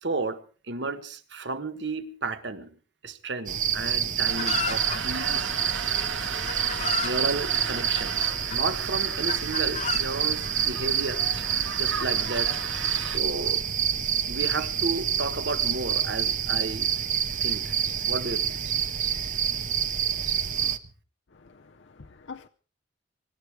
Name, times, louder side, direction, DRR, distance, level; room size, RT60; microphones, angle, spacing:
voice 1, 0.0-2.7 3.0-5.5 7.0-11.2 11.7-12.5 13.0-13.6 14.3-16.9 17.4-17.7 18.1-18.6, right 3 dB, 60° right, 1.5 m, -33 dB
sound 1, 3.5-20.8, right 8 dB, 40° right, 0.8 m, -27 dB
sound 2, 4.2-13.2, right 5 dB, 85° right, 2.0 m, -36 dB
Chicken rooster, 4.4-5.0 5.9-6.0 6.5-7.2 8.0-8.6 9.3-10.0, left 7 dB, 35° left, 0.8 m, -32 dB
voice 2, 21.3-22.5, left 5 dB, 65° left, 0.7 m, -46 dB
25.0 x 12.0 x 4.7 m
head